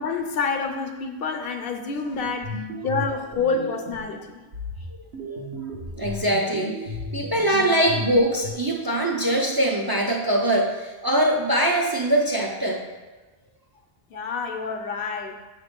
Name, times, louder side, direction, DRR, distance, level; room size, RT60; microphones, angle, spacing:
voice 1, 0.0-2.6 2.8-4.4 14.1-15.3, left 4 dB, 65° left, 5 dB, 0.8 m, -28 dB
sound 1, 2.1-4.1 4.5-8.5, left 1 dB, 80° right, 1.1 m, -34 dB
voice 2, 6.0-12.8, right 1 dB, 40° right, -1 dB, 0.3 m, -22 dB
6.9 x 3.0 x 5.1 m, 1.2 s
omnidirectional pair, 1.1 m